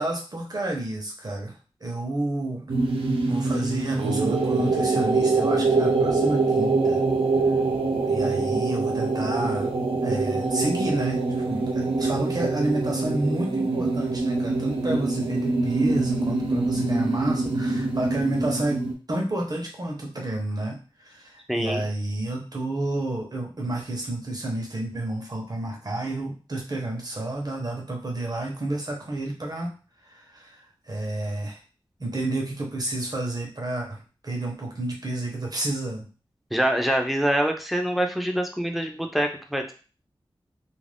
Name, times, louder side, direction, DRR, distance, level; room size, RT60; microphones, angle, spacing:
voice 1, 0.0-1.5 1.8-2.7 3.3-7.0 8.0-9.7 10.0-29.8 30.1-30.6 30.9-31.6 32.0-36.1, right 1 dB, 45° right, 0 dB, 0.8 m, -30 dB
sound 1, 2.7-18.9, right 3 dB, 90° right, 0.5 m, -24 dB
voice 2, 21.5-21.8 36.5-39.7, equal, ahead, 3 dB, 0.5 m, -25 dB
2.5 x 2.0 x 3.3 m, 0.35 s
wide cardioid pair, 85°, 9 cm